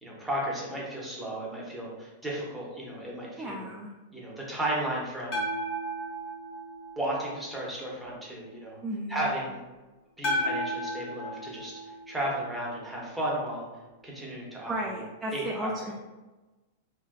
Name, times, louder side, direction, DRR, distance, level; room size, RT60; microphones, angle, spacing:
voice 1, 0.0-3.7 4.1-5.4 7.0-8.8 9.1-9.6 10.2-11.8 12.1-13.7 14.0-14.9 15.3-15.7, right 1 dB, 5° right, -5 dB, 0.9 m, -34 dB
voice 2, 3.4-3.9 8.8-9.3 14.7-15.9, right 1 dB, 20° right, -1 dB, 0.3 m, -34 dB
sound 1, 5.3-7.5 10.2-12.6, equal, 45° left, 1.0 m, -34 dB
3.2 x 2.1 x 2.2 m, 1.2 s
figure-of-eight pair, 95°, 0 cm